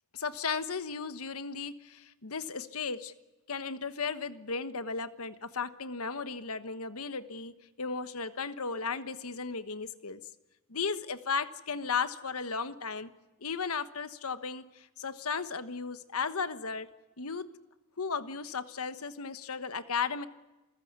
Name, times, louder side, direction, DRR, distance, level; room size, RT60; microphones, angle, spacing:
voice 1, 0.1-3.1 3.5-10.2 10.7-13.1 13.4-16.9 17.2-17.5 18.0-20.3, left 5 dB, 90° left, 12 dB, 1.3 m, -35 dB
28.0 x 15.5 x 9.6 m, 1.1 s
head